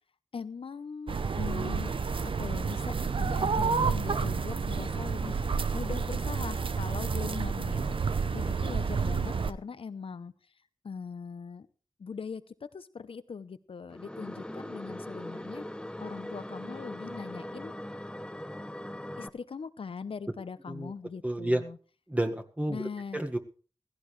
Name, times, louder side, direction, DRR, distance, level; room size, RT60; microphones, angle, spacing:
voice 1, 0.3-1.9 2.4-5.4 5.7-10.3 10.8-11.7 12.0-15.6 16.0-17.7 19.2-21.8 22.7-23.2, left 5 dB, 80° left, 14 dB, 0.8 m, -41 dB
sound 1, 1.1-9.5, right 5 dB, 70° right, 0.8 m, -30 dB
sound 2, 13.9-19.3, left 1 dB, 10° left, 0.9 m, -40 dB
voice 2, 21.2-21.6 22.1-22.8 23.1-23.4, right 1 dB, 15° right, 4 dB, 1.7 m, -30 dB
16.0 x 15.5 x 3.3 m, 0.39 s
wide cardioid pair, 50°, 9 cm